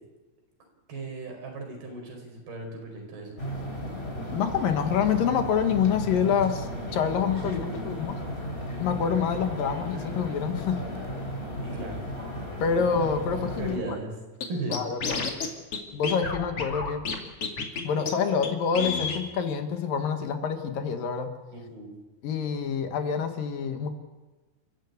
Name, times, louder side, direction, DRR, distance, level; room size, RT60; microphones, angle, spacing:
voice 1, 0.9-3.4 11.5-12.0 13.6-14.1 14.5-14.8 21.5-21.9, right 2 dB, 80° right, 2 dB, 6.9 m, -36 dB
sound 1, 3.4-13.8, equal, 15° left, 3.6 m, -35 dB
voice 2, 4.3-8.1 8.8-10.8 12.6-14.0 14.7-15.3 15.9-17.0 17.8-21.3 22.2-23.9, left 7 dB, 65° left, 6 dB, 3.1 m, -27 dB
Scratching (performance technique), 14.4-14.5 14.7-15.5 15.7-15.8 16.0-17.2 17.4-17.8 18.1-18.2 18.4-18.5 18.7-19.2, left 5 dB, 40° left, 2.9 m, -30 dB
29.5 x 14.0 x 8.2 m, 1.2 s
omnidirectional pair, 4.4 m